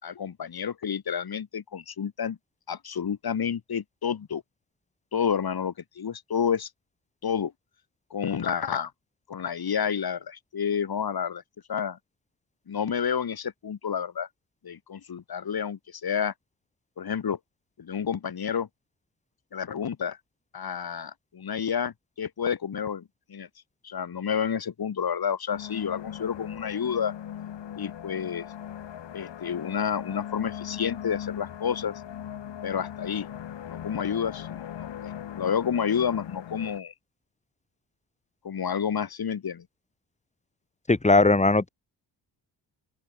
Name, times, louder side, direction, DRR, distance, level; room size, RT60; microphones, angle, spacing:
voice 1, 0.0-2.4 2.7-4.4 5.1-6.7 7.2-7.5 8.1-8.9 9.3-11.4 11.7-12.0 12.7-14.3 14.6-16.3 17.0-17.4 17.8-18.7 19.5-20.2 20.5-23.0 23.3-23.5 23.8-27.1 27.8-28.5 29.1-31.9 32.6-33.3 33.7-36.9 38.4-39.6, left 7 dB, 50° left, 3.2 m, -30 dB
sound 1, 25.5-36.8, left 10 dB, 70° left, 3.4 m, -39 dB
voice 2, 40.9-41.7, left 3 dB, 15° left, 1.8 m, -19 dB
open air
supercardioid pair, 60°, 46 cm